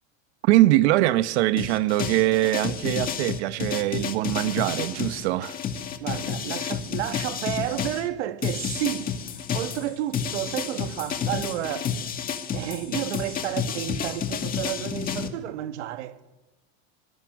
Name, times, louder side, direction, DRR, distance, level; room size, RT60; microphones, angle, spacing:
voice 1, 0.4-5.6, right 16 dB, 70° right, 1.2 m, -22 dB
sound 1, 1.6-8.0 8.4-15.3, left 7 dB, 25° left, 1.8 m, -30 dB
voice 2, 6.0-11.9 12.5-16.2, right 13 dB, 90° right, 1.7 m, -31 dB
25.5 x 22.0 x 6.2 m
supercardioid pair, 150°, 34 cm